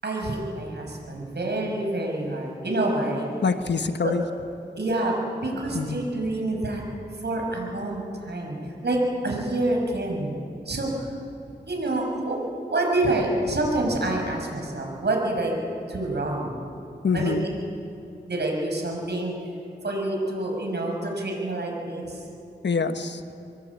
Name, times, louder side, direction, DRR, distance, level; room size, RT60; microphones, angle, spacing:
voice 1, 0.0-3.3 4.0-4.1 4.8-6.8 7.2-8.6 8.8-10.4 10.7-11.1 11.6-12.4 12.7-15.5 15.9-16.6 17.1-17.4 18.3-19.3 19.8-22.2, right 2 dB, 70° right, 0 dB, 6.0 m, -27 dB
voice 2, 3.4-4.2 5.7-6.1 17.0-17.5 22.6-23.2, left 4 dB, 75° left, 9 dB, 1.3 m, -25 dB
24.0 x 21.5 x 8.4 m, 2.7 s
wide cardioid pair, 60°, 18 cm